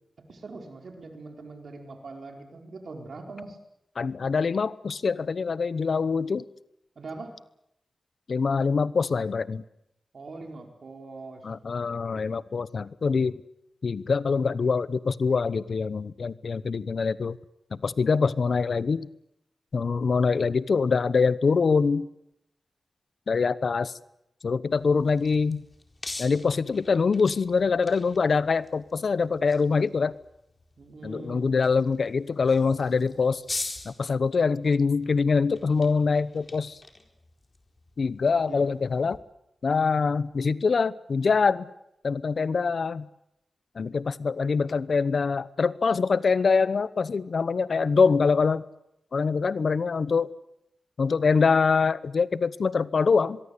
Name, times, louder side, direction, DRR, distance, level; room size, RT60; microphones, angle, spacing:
voice 1, 0.3-3.6 7.0-7.4 10.1-11.4 30.8-31.6 38.5-38.7, right 3 dB, 70° right, 4 dB, 4.6 m, -42 dB
voice 2, 4.0-6.4 8.3-9.6 11.4-13.4 13.8-17.4 17.7-19.1 19.7-22.1 23.3-23.9 24.4-25.6 26.2-30.1 31.0-36.8 38.0-39.2 39.6-41.7 42.0-43.1 43.8-48.6 49.1-50.3 51.0-53.4, left 5 dB, 70° left, 17 dB, 0.9 m, -24 dB
sound 1, 24.7-39.2, left 2 dB, 40° left, 4.2 m, -44 dB
25.0 x 22.5 x 8.4 m, 0.81 s
cardioid pair, 65°, 0 cm